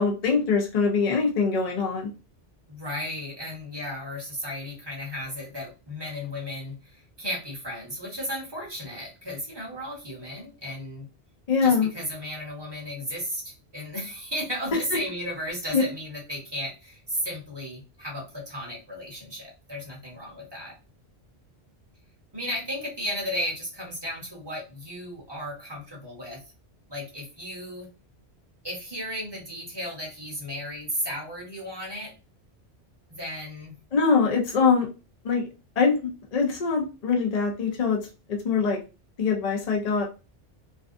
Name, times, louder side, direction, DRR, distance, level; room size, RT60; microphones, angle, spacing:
voice 1, 0.0-2.1 11.5-11.9 15.7-15.8 33.9-34.9 35.2-35.4 35.8-36.0 36.3-38.0 38.3-38.8 39.2-40.1, left 5 dB, 50° left, 0 dB, 0.5 m, -23 dB
voice 2, 2.7-11.1 11.6-20.7 22.3-26.4 26.9-27.9 28.6-32.1 33.1-33.8, equal, 25° right, -3 dB, 0.8 m, -34 dB
2.5 x 2.2 x 2.5 m, 0.31 s
omnidirectional pair, 1.1 m